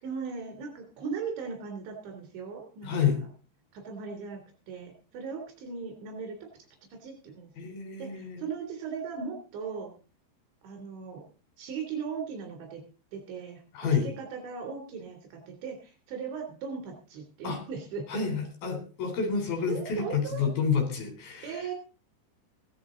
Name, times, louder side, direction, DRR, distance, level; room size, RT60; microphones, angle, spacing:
voice 1, 0.0-3.3 3.7-4.4 4.7-6.4 6.9-7.5 8.0-9.9 10.6-11.2 11.6-12.8 13.1-13.6 14.0-18.2 19.7-20.5 21.4-21.7, right 5 dB, 90° right, 4 dB, 5.6 m, -38 dB
voice 2, 2.8-3.2 7.6-8.4 13.7-14.1 17.4-17.6 18.1-21.6, left 6 dB, 55° left, 5 dB, 5.4 m, -29 dB
16.0 x 13.0 x 3.9 m, 0.35 s
omnidirectional pair, 5.1 m